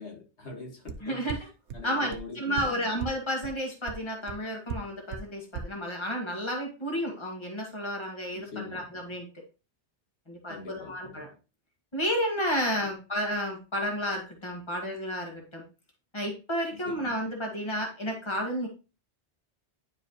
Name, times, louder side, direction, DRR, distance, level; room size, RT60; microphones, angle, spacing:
voice 1, 0.0-1.4 1.7-2.9 8.3-8.8 10.5-11.3 12.8-12.9 16.7-17.1, left 4 dB, 90° left, 2.2 m, -43 dB
sound 1, 0.9-1.0 1.3-1.4 1.7-1.8 2.1-2.2 2.6-2.7 3.0-3.1 3.4-3.5 3.9-4.0 4.3-4.4 4.7-4.8 5.1-5.2 5.5-5.6, right 8 dB, 85° right, 1.0 m, -34 dB
voice 2, 1.0-1.4 1.8-9.3 10.3-11.3 11.9-15.6 16.1-18.7, equal, 25° left, 1.9 m, -31 dB
10.5 x 4.8 x 3.1 m
omnidirectional pair, 1.1 m